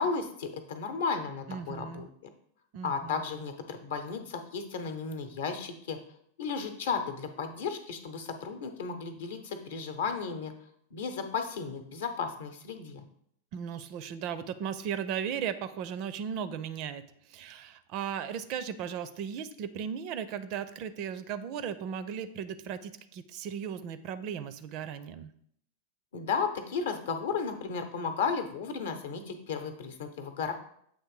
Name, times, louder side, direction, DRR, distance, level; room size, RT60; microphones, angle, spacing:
voice 1, 0.0-2.1 2.8-6.0 6.4-10.5 10.9-13.0 26.1-30.5, left 5 dB, 60° left, 7 dB, 0.8 m, -34 dB
voice 2, 1.5-2.1 2.7-3.2 13.5-25.3, right 8 dB, 40° right, 13 dB, 0.4 m, -36 dB
7.8 x 3.1 x 4.8 m, 0.69 s
figure-of-eight pair, 90°, 0 cm